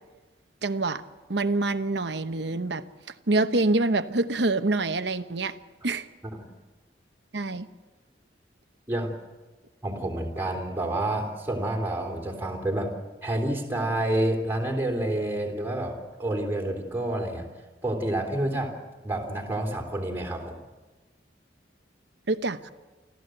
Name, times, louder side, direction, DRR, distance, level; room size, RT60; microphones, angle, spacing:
voice 1, 0.6-1.0 1.3-2.8 3.3-5.5 5.8-6.1 7.3-7.7 22.3-22.7, right 2 dB, 70° right, 10 dB, 1.0 m, -26 dB
voice 2, 9.8-12.9 13.2-17.5 17.8-18.8 19.0-20.6, right 1 dB, 10° right, 1 dB, 3.3 m, -29 dB
28.5 x 14.0 x 7.9 m, 1.2 s
head